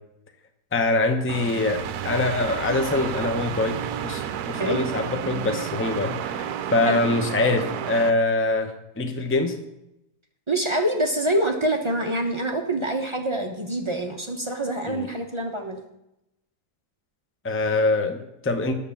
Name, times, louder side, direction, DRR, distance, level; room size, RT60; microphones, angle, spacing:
voice 1, 0.7-4.2 4.5-9.6 14.9-15.1 17.4-18.7, left 2 dB, 15° left, 6 dB, 0.5 m, -24 dB
sound 1, 1.3-8.1, right 9 dB, 70° right, 1.1 m, -31 dB
voice 2, 10.5-15.8, right 1 dB, 25° right, 2 dB, 0.7 m, -25 dB
9.4 x 7.1 x 7.0 m, 0.86 s
omnidirectional pair, 1.8 m